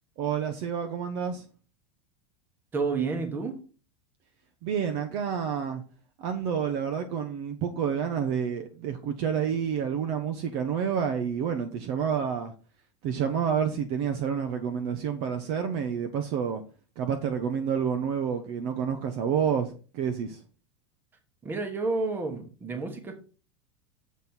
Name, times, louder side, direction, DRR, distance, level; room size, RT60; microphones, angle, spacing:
voice 1, 0.2-1.4 4.6-5.8 6.2-12.5 13.0-16.6 17.0-20.4, right 7 dB, 35° right, 0.7 m, -29 dB
voice 2, 2.7-3.6 21.4-23.2, right 4 dB, 15° right, 1.1 m, -30 dB
7.3 x 4.1 x 6.0 m
supercardioid pair, 175°, 15 cm